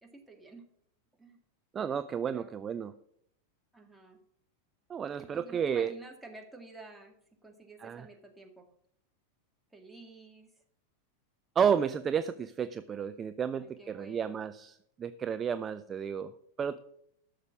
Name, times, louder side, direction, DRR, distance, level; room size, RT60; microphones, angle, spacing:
voice 1, 0.0-0.6 1.2-1.4 2.3-2.5 3.7-4.2 5.3-7.1 7.4-8.7 9.7-10.6 13.6-14.4, right 3 dB, 5° right, 1 dB, 2.1 m, -51 dB
voice 2, 1.7-2.9 4.9-5.9 7.8-8.1 11.6-16.3 16.6-16.8, right 7 dB, 25° right, 12 dB, 0.5 m, -32 dB
12.5 x 6.7 x 6.0 m, 0.70 s
figure-of-eight pair, 90°, 0 cm